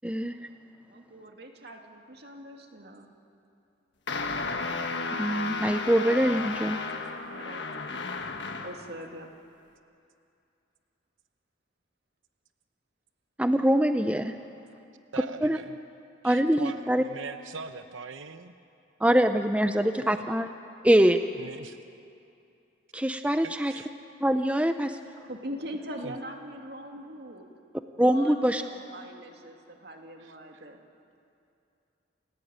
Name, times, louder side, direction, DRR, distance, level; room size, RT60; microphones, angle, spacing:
voice 1, 0.0-0.4 5.1-6.8 13.4-14.3 15.4-15.6 16.2-17.0 19.0-20.5 20.8-21.2 22.9-23.7 24.2-25.0 28.0-28.6, right 1 dB, 5° right, 8 dB, 0.6 m, -23 dB
voice 2, 0.9-3.1 7.3-7.7 8.6-9.3 25.2-27.5 28.1-30.8, equal, 55° right, 3 dB, 2.4 m, -42 dB
sound 1, 4.1-8.9, left 3 dB, 65° left, 1.5 m, -33 dB
voice 3, 15.1-15.8 16.2-18.5 20.0-20.2 21.4-21.8 23.4-23.9 26.0-26.2 30.2-30.6, right 4 dB, 85° right, 9 dB, 0.8 m, -42 dB
29.0 x 16.5 x 8.9 m, 2.6 s
head